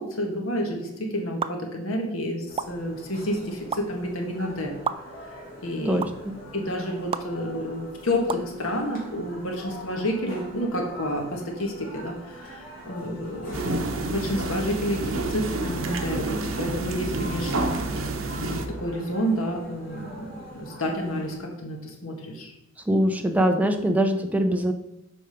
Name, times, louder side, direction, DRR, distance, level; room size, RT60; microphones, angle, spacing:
voice 1, 0.0-4.7 5.6-6.0 6.5-18.0 18.4-22.5, equal, 85° left, 2 dB, 1.7 m, -30 dB
sound 1, 1.4-1.5 2.6-2.7 3.7-3.8 4.9-5.0 6.0-6.1 7.1-7.2 8.3-8.5, right 6 dB, 25° right, 0.3 m, -27 dB
sound 2, 2.5-21.4, equal, 45° left, 3.1 m, -43 dB
voice 2, 5.9-6.4 22.9-24.7, right 1 dB, 5° right, 5 dB, 0.7 m, -23 dB
sound 3, 13.5-18.7, right 2 dB, 75° right, 0.9 m, -29 dB
7.2 x 5.1 x 5.0 m, 0.88 s
head